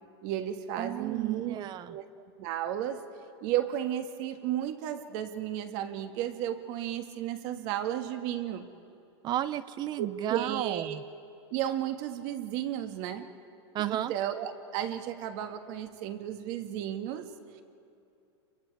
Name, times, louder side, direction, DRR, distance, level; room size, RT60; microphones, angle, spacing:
voice 1, 0.2-1.6 1.9-2.0 2.4-3.1 3.4-8.7 10.0-11.0 11.5-13.3 13.8-17.3, right 11 dB, 50° right, 7 dB, 1.7 m, -33 dB
voice 2, 0.8-2.0 9.2-11.0 13.7-14.1, right 12 dB, 30° right, 16 dB, 0.7 m, -33 dB
27.5 x 23.5 x 4.8 m, 2.6 s
supercardioid pair, 135°, 15 cm